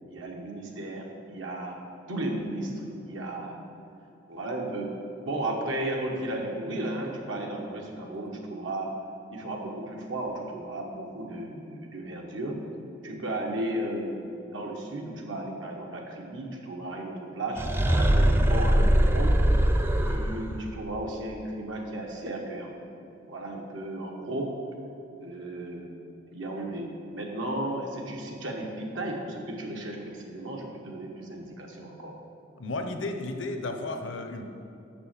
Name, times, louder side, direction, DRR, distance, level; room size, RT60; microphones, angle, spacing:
voice 1, 0.1-1.8 2.1-3.6 4.3-4.9 5.2-8.9 9.3-12.6 13.0-19.4 20.0-22.7 23.2-24.6 25.2-25.9 26.3-32.2, right 1 dB, 80° right, 0 dB, 1.3 m, -34 dB
sound 1, 17.6-20.6, right 1 dB, 10° right, 0.3 m, -22 dB
voice 2, 32.6-34.5, left 2 dB, 75° left, 6 dB, 0.8 m, -33 dB
6.6 x 6.0 x 7.3 m, 2.8 s
head